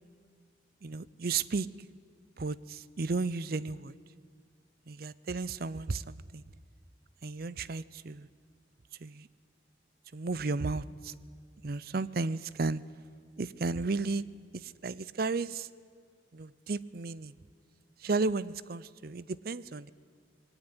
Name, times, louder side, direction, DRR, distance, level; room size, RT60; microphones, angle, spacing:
voice 1, 0.8-1.7 2.4-4.0 4.9-6.4 7.2-8.3 9.0-9.3 10.1-11.1 11.6-12.8 13.4-14.2 14.6-15.7 16.3-17.3 18.0-19.9, right 3 dB, 50° right, 18 dB, 0.6 m, -33 dB
21.0 x 18.0 x 9.8 m, 2.1 s
head